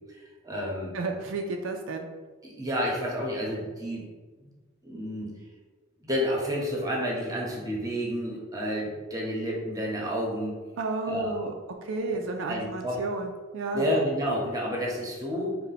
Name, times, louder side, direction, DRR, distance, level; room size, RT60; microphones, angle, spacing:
voice 1, 0.1-0.9 2.4-4.0 4.4-4.5 4.8-5.3 6.0-10.5 11.1-11.4 12.5-13.0 13.7-15.6, equal, 20° right, -2 dB, 0.8 m, -30 dB
voice 2, 0.9-2.1 10.8-11.5 11.8-13.9, right 3 dB, 75° right, 3 dB, 0.4 m, -32 dB
4.0 x 2.1 x 4.0 m, 1.3 s
head